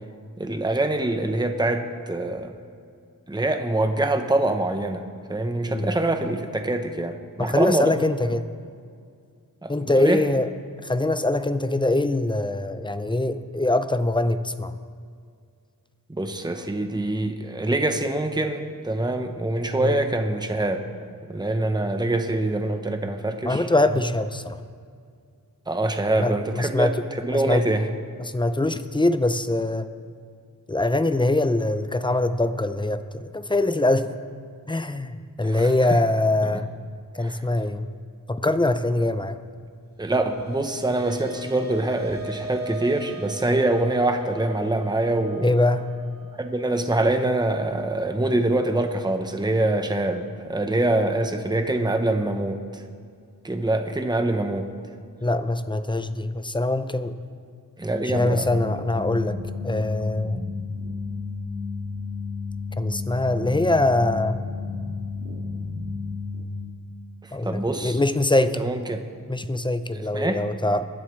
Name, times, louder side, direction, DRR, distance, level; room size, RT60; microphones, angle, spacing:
voice 1, 0.4-2.6 3.3-7.9 9.6-9.7 10.0-10.2 16.1-20.9 21.3-24.0 25.7-27.9 35.4-36.0 36.4-36.6 37.2-37.5 40.0-45.5 46.4-52.8 53.4-54.7 57.8-58.5 67.4-68.0 68.4-69.1 69.9-70.4, right 2 dB, 10° right, 6 dB, 0.9 m, -25 dB
voice 2, 7.4-8.5 9.7-10.5 10.8-14.7 19.8-20.1 23.4-24.6 26.2-27.0 27.3-27.6 28.2-29.9 30.7-34.1 34.7-36.7 37.1-37.9 38.3-39.4 45.4-45.9 55.2-57.2 58.0-59.4 59.6-60.4 62.8-64.4 67.3-68.6 69.3-70.9, left 2 dB, 15° left, 11 dB, 0.6 m, -23 dB
sound 1, 40.1-48.7, right 1 dB, 25° right, 2.4 m, -40 dB
sound 2, 58.1-66.5, left 3 dB, 50° right, 2.0 m, -32 dB
23.0 x 10.5 x 3.2 m, 2.2 s
wide cardioid pair, 80°, 36 cm